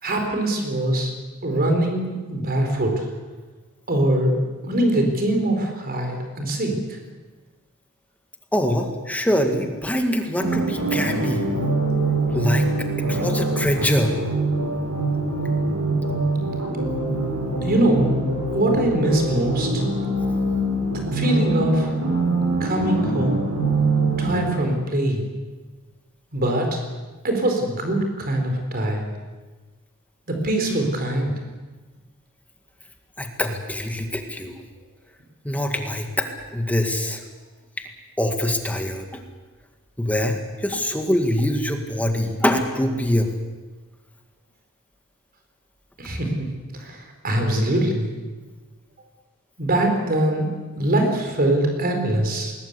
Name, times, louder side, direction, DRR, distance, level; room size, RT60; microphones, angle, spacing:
voice 1, 0.0-1.1 1.4-3.0 3.9-4.4 4.6-6.8 17.6-18.1 18.5-19.8 20.9-21.9 22.6-23.4 24.2-25.2 26.3-26.8 27.2-29.0 30.3-31.3 46.0-46.5 46.8-48.1 49.6-52.5, right 1 dB, 45° right, 3 dB, 4.5 m, -22 dB
voice 2, 8.5-11.5 12.3-14.1 33.2-34.5 35.4-37.2 38.2-39.2 40.0-43.3, left 1 dB, 5° left, 4 dB, 1.9 m, -24 dB
sound 1, 10.4-24.5, right 2 dB, 75° right, 7.3 m, -24 dB
21.0 x 20.5 x 8.3 m, 1.3 s
head